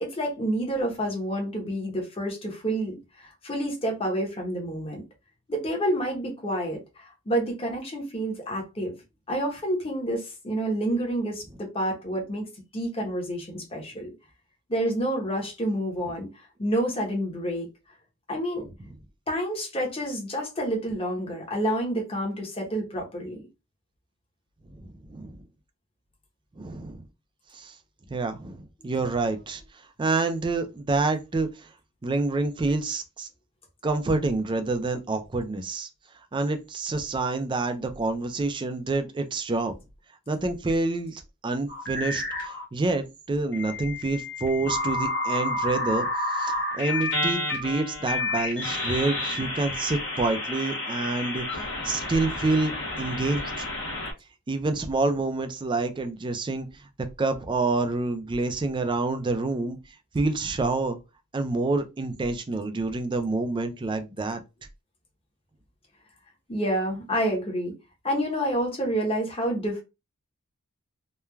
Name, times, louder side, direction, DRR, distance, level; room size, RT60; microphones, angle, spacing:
voice 1, 0.0-5.0 5.5-8.9 9.3-14.1 14.7-17.7 18.3-18.7 19.3-23.4 66.5-67.7 68.0-69.8, right 1 dB, 25° left, 0.9 m, -29 dB
voice 2, 24.7-25.4 26.6-27.0 27.5-27.8 28.1-29.6 30.0-31.7 32.0-33.3 33.8-35.9 36.3-39.7 40.3-52.7 53.0-53.7 54.5-56.9 57.2-59.8 60.1-61.0 61.3-64.4, right 3 dB, 20° right, 0.3 m, -28 dB
sound 1, 41.7-42.6 43.5-54.1, left 2 dB, 55° left, 0.9 m, -30 dB
3.1 x 2.2 x 2.3 m
head